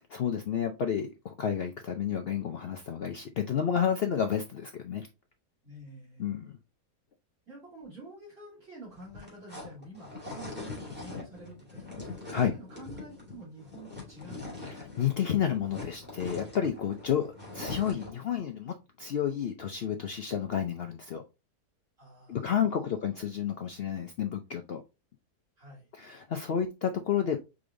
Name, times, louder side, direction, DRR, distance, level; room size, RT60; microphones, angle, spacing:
voice 1, 0.1-5.1 6.2-6.6 12.3-12.5 14.6-21.2 22.3-24.8 25.9-27.4, left 8 dB, 80° left, 5 dB, 0.5 m, -31 dB
voice 2, 5.6-6.4 7.5-14.7 17.1-17.3 22.0-22.8 25.6-25.9, right 1 dB, 55° right, -8 dB, 3.0 m, -49 dB
sound 1, 8.9-15.2 15.5-18.2, left 3 dB, 5° right, 2.1 m, -42 dB
4.9 x 3.9 x 2.5 m, 0.26 s
omnidirectional pair, 1.6 m